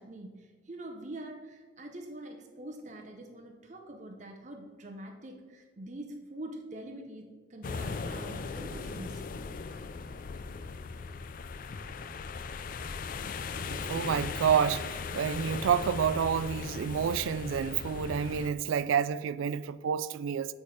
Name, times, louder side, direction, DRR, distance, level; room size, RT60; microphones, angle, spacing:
voice 1, 0.0-9.3, right 1 dB, 35° right, 0.7 m, -44 dB
sound 1, 7.6-18.5, left 4 dB, 45° left, 0.3 m, -38 dB
voice 2, 13.7-20.5, right 7 dB, 80° right, 0.3 m, -29 dB
8.3 x 4.2 x 4.9 m
head